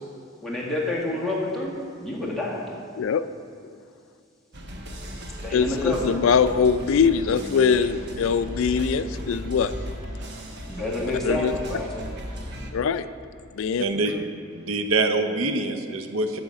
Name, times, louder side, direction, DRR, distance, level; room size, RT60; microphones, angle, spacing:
voice 1, 0.4-1.7 2.0-2.6 5.4-6.1 10.7-11.9, left 2 dB, ahead, -5 dB, 1.6 m, -28 dB
sound 1, 4.5-12.7, equal, 55° right, 1.1 m, -36 dB
voice 2, 5.5-9.7 11.2-11.5 12.7-13.1 13.5-13.8, left 6 dB, 75° left, 12 dB, 0.3 m, -22 dB
voice 3, 13.8-14.2 14.5-16.4, right 2 dB, 85° right, 7 dB, 0.7 m, -25 dB
10.5 x 4.8 x 7.4 m, 2.3 s
head